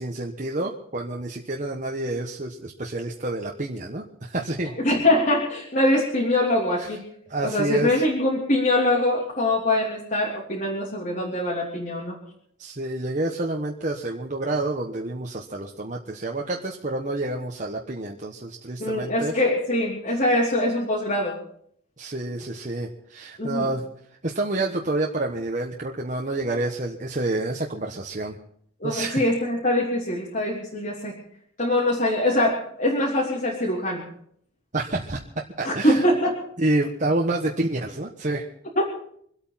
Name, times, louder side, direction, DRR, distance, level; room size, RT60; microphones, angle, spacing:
voice 1, 0.0-4.7 6.8-6.9 7.3-8.0 12.6-19.4 20.1-20.2 22.0-23.9 24.2-28.4 28.8-29.2 34.7-35.2 35.6-36.0 36.6-38.5, right 2 dB, 40° right, 0 dB, 1.3 m, -28 dB
voice 2, 4.8-7.0 7.4-12.2 18.8-21.3 23.4-23.7 28.8-31.1 31.6-34.0 35.6-36.4, left 1 dB, 40° left, -5 dB, 3.1 m, -23 dB
25.5 x 8.7 x 5.8 m, 0.66 s
head